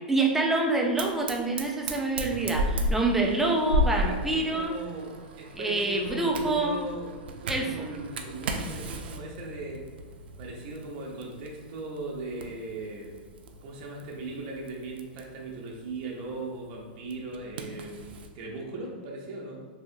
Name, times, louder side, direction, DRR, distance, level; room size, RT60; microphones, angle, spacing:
voice 1, 0.1-4.7 5.5-6.8 7.5-7.9, right 2 dB, 5° right, 0 dB, 0.3 m, -26 dB
Fire, 1.0-18.3, equal, 85° right, 0.4 m, -35 dB
voice 2, 3.9-9.8 10.4-13.2 13.6-19.6, right 2 dB, 40° right, -2 dB, 0.7 m, -38 dB
3.2 x 2.7 x 2.5 m, 1.5 s
supercardioid pair, 150°, 5 cm